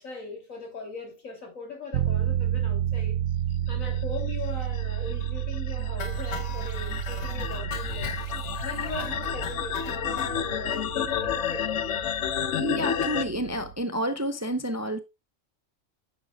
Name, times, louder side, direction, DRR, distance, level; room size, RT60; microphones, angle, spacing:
voice 1, 0.0-3.2 3.7-8.1 8.6-11.9, left 3 dB, 85° left, 3.5 m, -39 dB
sound 1, 1.9-13.8, right 11 dB, 80° right, 1.0 m, -31 dB
sound 2, 4.0-13.2, left 9 dB, 65° left, 1.0 m, -31 dB
sound 3, 6.0-10.3 10.7-10.8 11.1-11.2 11.5-11.6 11.9-12.0, left 4 dB, 35° left, 1.1 m, -40 dB
voice 2, 12.6-15.0, equal, 20° right, 0.5 m, -29 dB
9.3 x 7.4 x 2.3 m
omnidirectional pair, 1.4 m